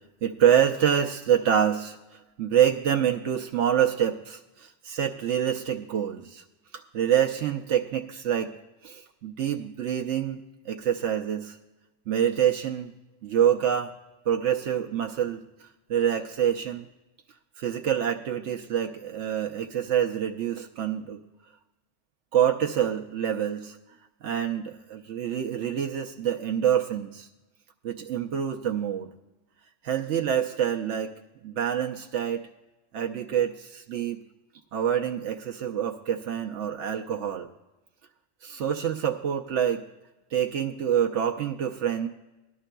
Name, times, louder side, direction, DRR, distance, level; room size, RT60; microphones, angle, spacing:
voice 1, 0.2-6.4 6.9-8.5 8.8-11.6 12.1-12.9 13.2-13.9 14.3-15.4 15.9-16.9 17.6-21.2 22.3-23.8 24.2-27.3 27.8-29.1 29.8-31.1 31.4-32.4 32.9-34.2 34.7-37.5 38.4-39.8 40.3-42.1, right 9 dB, 90° right, 2 dB, 1.0 m, -26 dB
17.5 x 12.0 x 2.2 m, 1.0 s
omnidirectional pair, 1.2 m